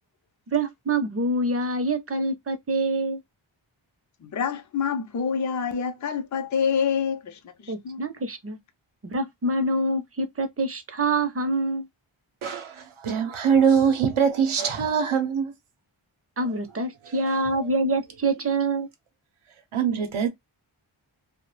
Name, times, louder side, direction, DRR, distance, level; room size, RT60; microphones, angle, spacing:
voice 1, 0.5-3.2 7.7-8.6 9.0-11.9 16.4-18.9, right 2 dB, 30° right, 0.5 m, -26 dB
voice 2, 4.2-8.0, left 6 dB, 40° left, 0.5 m, -27 dB
voice 3, 12.4-15.5 17.0-17.1 17.5-17.7 19.7-20.3, right 7 dB, 85° right, 0.7 m, -23 dB
2.2 x 2.1 x 3.1 m
wide cardioid pair, 65°, 49 cm